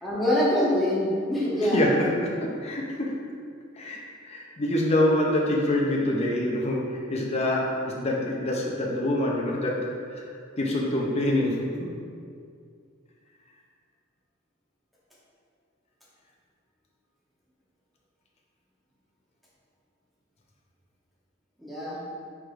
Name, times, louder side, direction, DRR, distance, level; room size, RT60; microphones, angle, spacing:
voice 1, 0.0-1.8 21.6-22.0, left 1 dB, ahead, -9 dB, 1.0 m, -24 dB
voice 2, 1.7-2.1 2.4-3.2 3.8-9.9 10.1-10.2 10.6-11.7, left 1 dB, 30° left, -2 dB, 0.5 m, -26 dB
4.6 x 4.6 x 2.4 m, 2.2 s
head